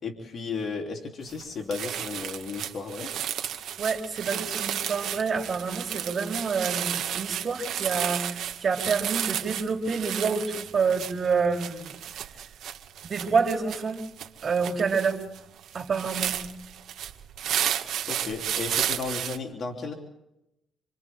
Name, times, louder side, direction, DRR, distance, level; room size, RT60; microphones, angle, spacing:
voice 1, 0.0-3.1 18.0-19.9, left 4 dB, 50° left, 1 dB, 3.7 m, -34 dB
sound 1, 1.3-1.4 1.7-19.4, right 10 dB, 75° right, 1.8 m, -32 dB
voice 2, 3.8-12.0 13.0-14.0 14.4-15.2 15.7-16.4, right 5 dB, 45° right, 2 dB, 4.1 m, -28 dB
28.0 x 27.5 x 3.8 m, 0.85 s
cardioid pair, 90°, 0 cm